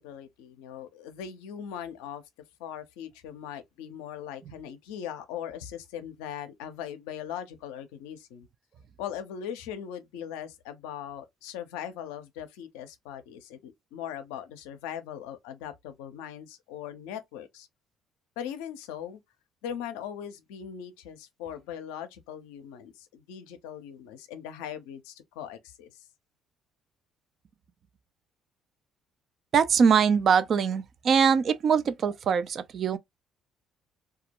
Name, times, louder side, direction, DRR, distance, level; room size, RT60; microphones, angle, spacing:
voice 1, 0.0-2.2 2.6-8.5 9.0-17.7 18.4-19.2 19.6-26.1, left 9 dB, 85° left, 0.5 m, -40 dB
voice 2, 29.5-33.0, right 6 dB, 55° right, 0.4 m, -22 dB
2.3 x 2.1 x 2.8 m
hypercardioid pair, 60°, 0 cm